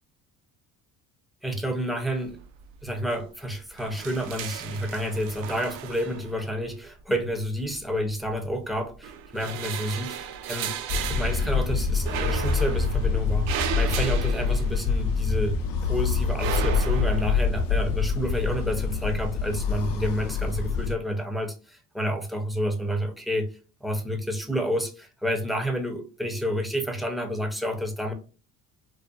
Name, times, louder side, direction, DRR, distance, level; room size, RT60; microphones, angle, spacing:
voice 1, 1.4-2.4 2.8-15.6 15.8-23.5 23.8-28.1, equal, ahead, 0.5 m, -29 dB
sound 1, 2.2-2.7 3.0-3.2 3.5-6.6 7.5-8.5 8.9-15.2 15.6-17.5, right 8 dB, 75° right, 0.5 m, -35 dB
sound 2, 10.9-20.9, left 5 dB, 50° left, 0.5 m, -26 dB
2.6 x 2.2 x 2.2 m
supercardioid pair, 75°, 45 cm